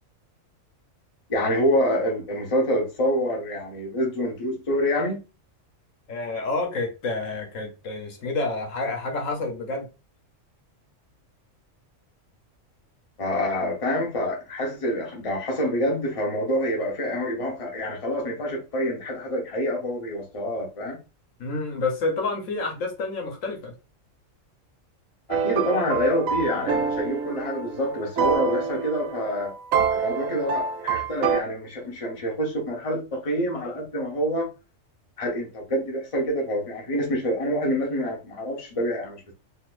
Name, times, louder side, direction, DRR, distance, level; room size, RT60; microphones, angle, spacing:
voice 1, 1.3-5.2 13.2-21.0 25.3-29.5 29.9-34.5 35.2-39.3, equal, 30° left, 0.9 m, -26 dB
voice 2, 6.1-9.9 21.4-23.7, left 3 dB, 75° left, 1.3 m, -29 dB
sound 1, 25.3-31.4, right 6 dB, 85° right, 1.0 m, -26 dB
4.0 x 2.6 x 2.4 m
omnidirectional pair, 1.4 m